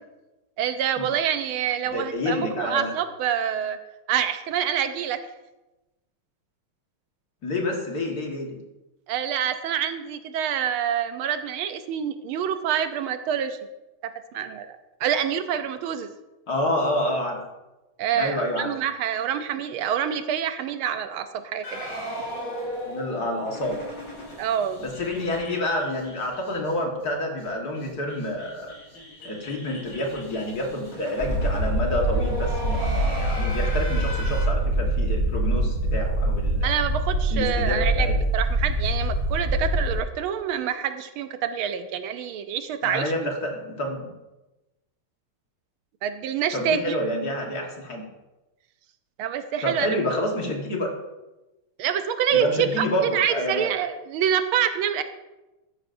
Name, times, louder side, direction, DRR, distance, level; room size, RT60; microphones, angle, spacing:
voice 1, 0.6-3.8 4.1-5.2 9.1-13.6 14.3-16.1 18.0-22.0 24.4-24.8 36.6-38.1 38.3-43.3 46.0-46.9 49.2-49.9 51.8-52.5 52.8-52.9 53.1-55.0, right 9 dB, 80° right, 9 dB, 1.5 m, -26 dB
voice 2, 1.9-2.9 7.4-8.6 16.5-17.4 18.1-18.7 22.9-23.8 24.8-28.7 29.2-36.7 37.3-38.1 42.8-44.1 46.5-48.1 49.6-50.9 52.3-53.7, left 1 dB, 50° left, 0 dB, 2.0 m, -28 dB
sound 1, 21.6-26.7 27.0-27.1 27.4-27.5 27.7-34.4, equal, 80° left, 5.1 m, -37 dB
sound 2, 31.2-40.0, right 1 dB, 35° right, 2.0 m, -24 dB
13.0 x 10.0 x 2.6 m, 1.0 s
omnidirectional pair, 2.3 m